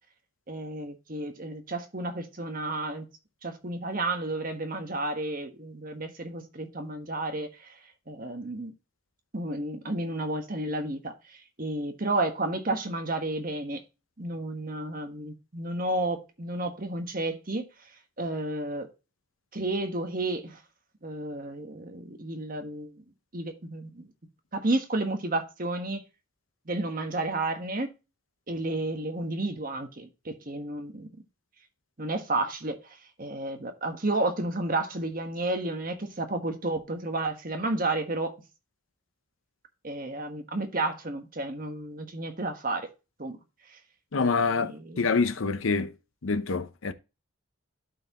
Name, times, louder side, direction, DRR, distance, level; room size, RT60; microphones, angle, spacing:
voice 1, 0.5-3.0 3.4-7.8 8.1-8.7 9.3-13.8 14.2-17.7 18.2-18.9 19.5-20.6 21.0-23.0 23.3-24.1 24.5-26.0 26.7-27.9 28.5-31.1 32.0-38.3 39.8-42.9 43.2-43.4 43.7-43.8 44.2-45.1, right 2 dB, 40° right, 1.3 m, -32 dB
voice 2, 44.1-45.9 46.2-46.9, left 4 dB, 70° left, 0.7 m, -26 dB
12.0 x 4.6 x 2.9 m
head